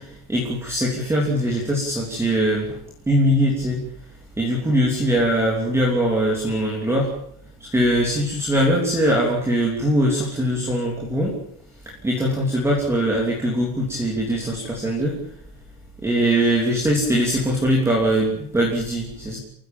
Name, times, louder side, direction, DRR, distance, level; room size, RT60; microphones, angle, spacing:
voice 1, 0.0-2.7 3.1-3.8 4.4-7.1 7.7-11.3 12.0-15.2 16.0-19.4, equal, 5° right, -2 dB, 3.0 m, -21 dB
29.5 x 15.0 x 7.3 m, 0.67 s
supercardioid pair, 180°, 49 cm